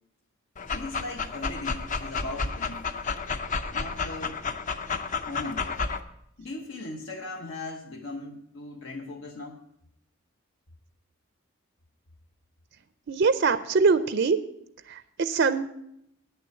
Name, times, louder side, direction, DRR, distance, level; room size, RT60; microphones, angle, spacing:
Dog, 0.6-6.0, left 4 dB, 40° left, 0.6 m, -31 dB
voice 1, 0.7-2.9 3.7-4.4 5.3-5.7 6.4-9.6, left 2 dB, 70° left, 1 dB, 1.0 m, -38 dB
voice 2, 13.1-14.4 14.9-15.7, right 4 dB, 60° right, 11 dB, 0.5 m, -23 dB
9.2 x 6.9 x 7.7 m, 0.77 s
head